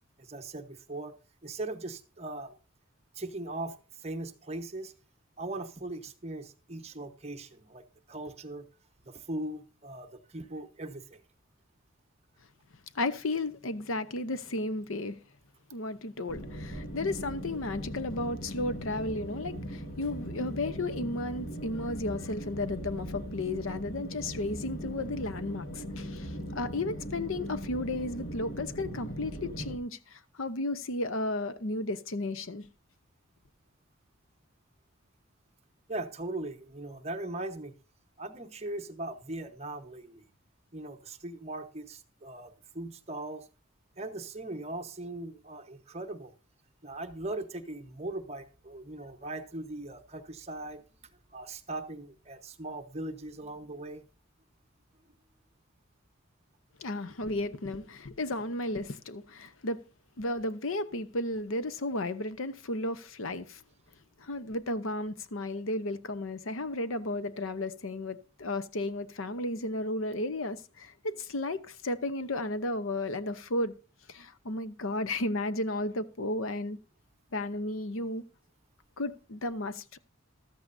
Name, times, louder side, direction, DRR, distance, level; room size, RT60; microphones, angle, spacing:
voice 1, 0.2-1.1 1.4-2.5 3.1-4.9 5.4-8.7 9.0-11.2 35.9-37.7 38.2-40.2 40.7-43.5 44.0-46.3 46.8-50.8 51.3-54.0, right 2 dB, 30° right, 1.1 m, -39 dB
voice 2, 12.9-15.2 15.7-32.7 56.8-59.8 60.2-63.6 64.2-73.7 74.1-76.8 77.3-78.2 79.0-80.0, left 2 dB, 75° left, 0.8 m, -34 dB
sound 1, 16.3-29.8, equal, 50° left, 1.8 m, -39 dB
14.0 x 13.0 x 2.6 m
head